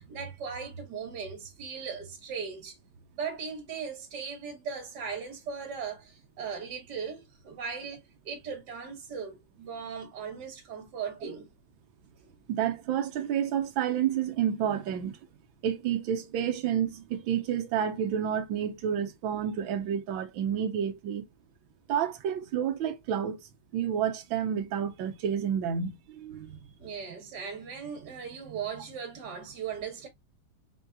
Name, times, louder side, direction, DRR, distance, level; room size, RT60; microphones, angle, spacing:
voice 1, 0.0-2.8 3.2-11.5 26.4-30.1, right 6 dB, 60° right, 1.7 m, -38 dB
voice 2, 12.5-15.2 15.6-21.3 21.9-23.4 23.7-26.5, right 9 dB, 75° right, 1.5 m, -29 dB
4.6 x 3.4 x 2.6 m
omnidirectional pair, 2.2 m